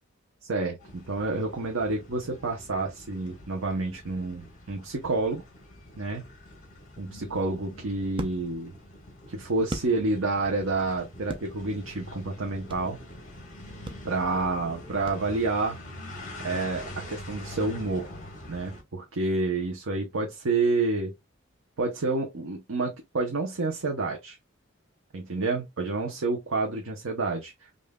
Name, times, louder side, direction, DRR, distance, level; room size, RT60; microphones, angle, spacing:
voice 1, 0.5-5.4 6.0-6.2 7.0-8.7 9.3-13.0 14.0-15.8 16.4-18.1 18.5-21.1 21.8-24.4 25.1-27.7, right 3 dB, 85° right, 0.8 m, -29 dB
sound 1, 0.8-18.8, left 1 dB, 40° left, 1.5 m, -44 dB
sound 2, 7.0-10.5 10.8-13.0 13.4-13.5 13.8-15.7, right 2 dB, 25° right, 0.5 m, -40 dB
5.3 x 2.6 x 2.3 m
head